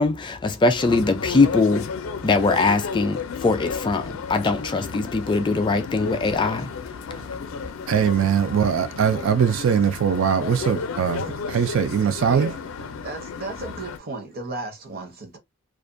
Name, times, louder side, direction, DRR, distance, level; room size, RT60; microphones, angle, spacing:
voice 1, 0.0-1.9 2.2-6.7 7.2-7.3 7.6-7.7, left 3 dB, 25° left, 0.3 m, -22 dB
sound 1, 0.8-14.0, left 5 dB, 90° left, 0.4 m, -33 dB
voice 2, 7.9-12.5, right 7 dB, 70° right, 0.3 m, -21 dB
voice 3, 13.0-15.4, right 2 dB, 45° right, 0.8 m, -34 dB
2.4 x 2.1 x 2.5 m
head